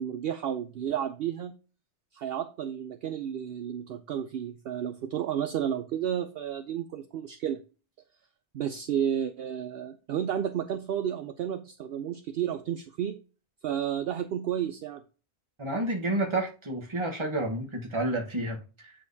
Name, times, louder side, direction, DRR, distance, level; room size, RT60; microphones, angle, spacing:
voice 1, 0.0-1.6 2.1-7.6 8.5-13.2 13.6-15.0, right 9 dB, 65° right, 0.7 m, -32 dB
voice 2, 15.6-18.9, right 1 dB, 25° right, 1.2 m, -30 dB
8.9 x 5.0 x 2.7 m
omnidirectional pair, 1.2 m